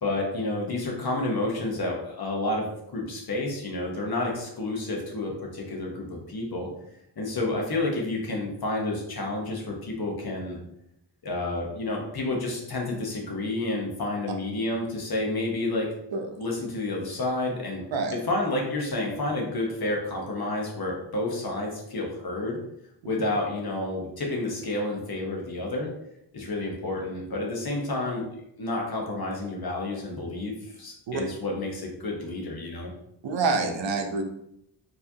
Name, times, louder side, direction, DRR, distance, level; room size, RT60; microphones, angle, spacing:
voice 1, 0.0-2.7 2.9-6.7 7.2-10.6 11.2-15.9 16.4-17.8 18.1-22.6 23.0-25.9 26.3-28.3 28.6-30.5 30.8-32.9, left 2 dB, 55° left, -1 dB, 1.1 m, -30 dB
voice 2, 33.2-34.2, right 4 dB, 90° right, 3 dB, 0.8 m, -27 dB
4.7 x 3.1 x 2.8 m, 0.78 s
wide cardioid pair, 140°, 43 cm